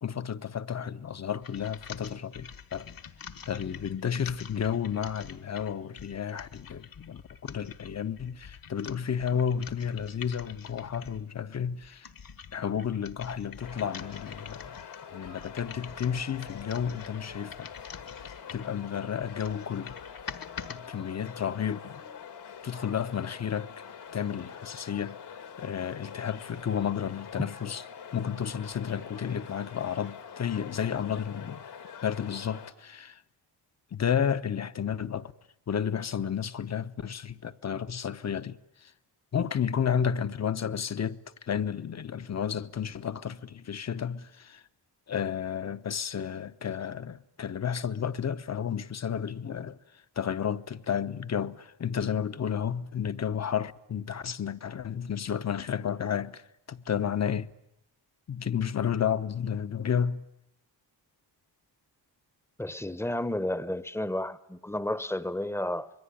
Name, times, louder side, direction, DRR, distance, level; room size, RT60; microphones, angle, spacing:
voice 1, 0.0-2.9 3.5-12.1 12.5-14.6 15.1-17.7 18.5-20.0 20.7-22.0 22.6-23.7 24.1-25.2 25.6-27.8 28.1-31.6 32.0-33.2 33.9-35.3 35.7-38.9 39.3-44.6 45.1-49.8 50.2-56.4 56.7-57.5 58.3-60.3, left 8 dB, 40° left, 1.0 m, -32 dB
sound 1, 1.4-11.3 11.8-18.8 19.2-20.8, left 7 dB, 55° left, 1.6 m, -46 dB
sound 2, 13.6-32.7, left 7 dB, 75° left, 2.8 m, -45 dB
voice 2, 62.6-65.9, left 1 dB, 5° left, 1.0 m, -32 dB
26.0 x 22.5 x 10.0 m
cardioid pair, 115°, 41 cm